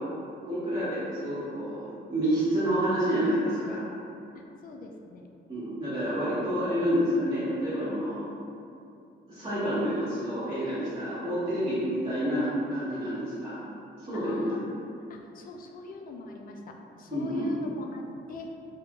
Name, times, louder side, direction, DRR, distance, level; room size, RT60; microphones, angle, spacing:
voice 1, 0.4-3.9 5.5-8.3 9.3-13.5 14.0-14.6 17.1-17.6, equal, 25° right, -14 dB, 1.1 m, -28 dB
voice 2, 4.6-5.3 14.1-14.6 15.1-18.0 18.3-18.5, left 3 dB, 45° left, 2 dB, 0.4 m, -42 dB
2.9 x 2.4 x 3.6 m, 2.6 s
cardioid pair, 90°, 20 cm